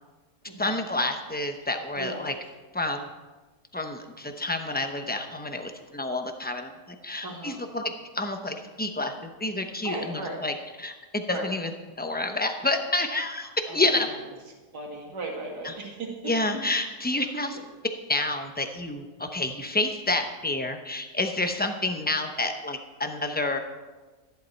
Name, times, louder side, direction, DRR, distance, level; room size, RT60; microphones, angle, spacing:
voice 1, 0.6-2.3 2.7-3.1 3.7-6.7 7.0-14.1 15.6-15.7 16.3-17.6 18.1-23.6, left 2 dB, 10° left, 5 dB, 0.4 m, -29 dB
voice 2, 7.2-7.6 9.8-10.4 11.3-11.5 13.7-14.2 14.7-16.1 17.2-17.3, right 2 dB, 75° right, 0 dB, 2.6 m, -36 dB
14.0 x 11.0 x 4.5 m, 1.2 s
omnidirectional pair, 1.7 m